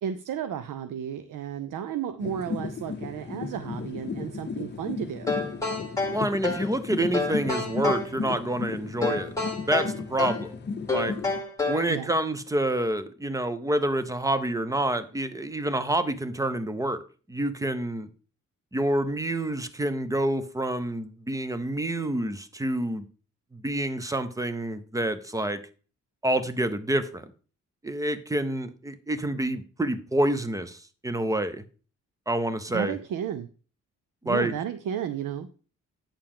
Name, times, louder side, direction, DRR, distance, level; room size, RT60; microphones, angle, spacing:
voice 1, 0.0-5.4 11.9-12.1 32.7-33.5 34.2-35.5, right 9 dB, 90° right, 0.6 m, -33 dB
sound 1, 2.2-11.4, left 4 dB, 35° left, 0.7 m, -35 dB
sound 2, 5.3-6.7 7.1-8.1 9.0-10.5 10.9-11.9, left 3 dB, 10° left, 1.6 m, -29 dB
voice 2, 6.1-9.3 9.7-10.5 10.9-11.2 11.7-17.0 17.3-18.1 18.7-23.0 23.5-25.6 26.2-27.2 27.8-30.8 31.0-31.6 32.3-32.9 34.3-34.5, right 1 dB, 10° right, 0.6 m, -27 dB
8.8 x 6.7 x 3.7 m
wide cardioid pair, 150°, 31 cm